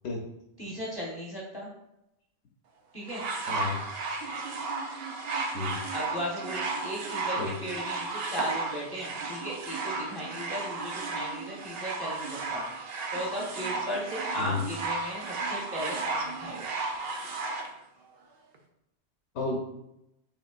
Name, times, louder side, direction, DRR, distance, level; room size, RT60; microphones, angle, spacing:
voice 1, 0.6-1.7 2.9-3.2 5.9-12.6 13.1-16.7, equal, 20° left, -5 dB, 1.0 m, -36 dB
sound 1, 3.1-17.7 18.5-18.6, right 3 dB, 65° right, 0.9 m, -34 dB
voice 2, 3.5-3.8 5.5-5.8 7.4-7.5 14.4-14.6 19.3-19.6, left 3 dB, 85° left, 0 dB, 1.0 m, -32 dB
6.0 x 3.4 x 2.5 m, 0.84 s
omnidirectional pair, 1.1 m